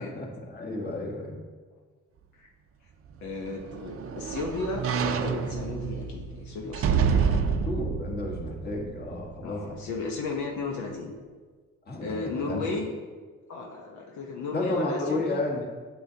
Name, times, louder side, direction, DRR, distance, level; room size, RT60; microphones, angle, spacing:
voice 1, 0.0-1.4 7.6-9.9 11.9-12.2 12.5-12.7 14.5-15.6, left 2 dB, 35° left, -1 dB, 1.5 m, -32 dB
sound 1, 3.1-9.4 9.9-10.0, right 6 dB, 50° right, 0.5 m, -29 dB
voice 2, 3.2-7.4 9.4-11.1 12.0-12.9 13.5-15.4, left 3 dB, 75° left, 0 dB, 0.9 m, -34 dB
8.5 x 6.2 x 2.8 m, 1.5 s
cardioid pair, 90°, 30 cm